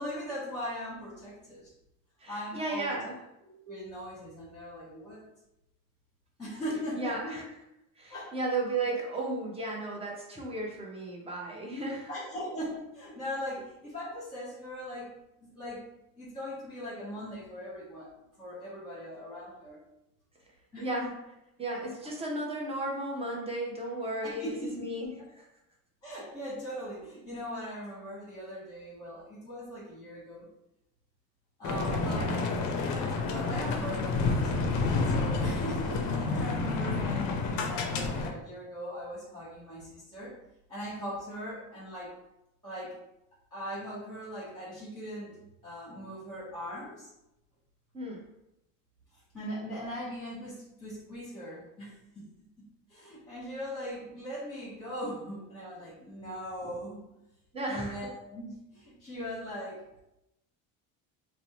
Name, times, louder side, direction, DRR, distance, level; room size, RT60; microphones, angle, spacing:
voice 1, 0.0-1.7 2.3-3.0 3.4-5.2 6.4-7.4 8.1-8.3 12.1-15.1 15.4-15.8 16.2-18.1 18.4-19.8 20.7-21.1 24.2-24.9 25.2-25.3 26.0-30.5 31.6-40.3 40.7-42.1 42.6-43.0 43.5-45.3 45.6-47.1 49.3-52.2 52.6-57.0 57.7-60.0, equal, 10° left, -9 dB, 1.1 m, -40 dB
voice 2, 2.2-3.2 6.6-7.5 8.0-12.2 13.5-13.6 20.8-21.1 21.6-25.5 32.1-32.3 47.9-48.2 57.5-58.0, right 2 dB, 15° right, -1 dB, 0.6 m, -35 dB
sound 1, 31.6-38.3, left 3 dB, 50° left, 0.5 m, -29 dB
2.6 x 2.0 x 3.0 m, 0.87 s
cardioid pair, 115°, 37 cm